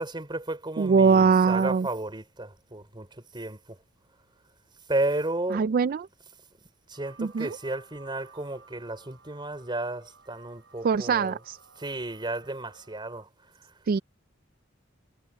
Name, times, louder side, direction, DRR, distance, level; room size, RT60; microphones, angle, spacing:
voice 1, 0.0-3.8 4.9-5.7 6.9-11.5 11.8-13.3 13.6-13.7, right 2 dB, 25° right, 4.1 m, -33 dB
voice 2, 0.8-1.9 5.5-6.1 7.2-7.6 10.8-11.6 13.9-14.0, right 5 dB, 45° right, 0.3 m, -22 dB
sound 1, 6.9-13.3, right 4 dB, 65° right, 6.4 m, -56 dB
head